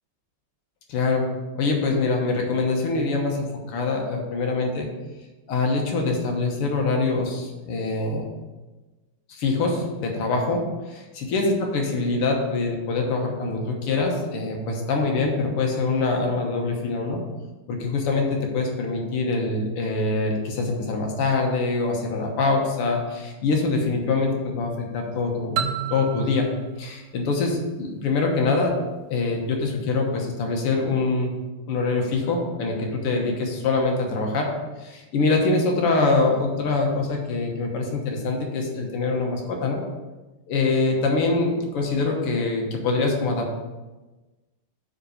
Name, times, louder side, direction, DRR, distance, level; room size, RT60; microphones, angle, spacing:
voice 1, 0.9-1.3 1.6-4.9 5.5-8.3 9.3-17.2 17.7-26.5 26.8-28.8 29.1-31.3 31.7-34.5 34.8-39.8 40.5-43.6, left 3 dB, 90° left, 1 dB, 2.1 m, -24 dB
sound 1, 25.6-28.3, right 10 dB, 80° right, 1.4 m, -32 dB
6.0 x 5.2 x 6.6 m, 1.2 s
omnidirectional pair, 2.4 m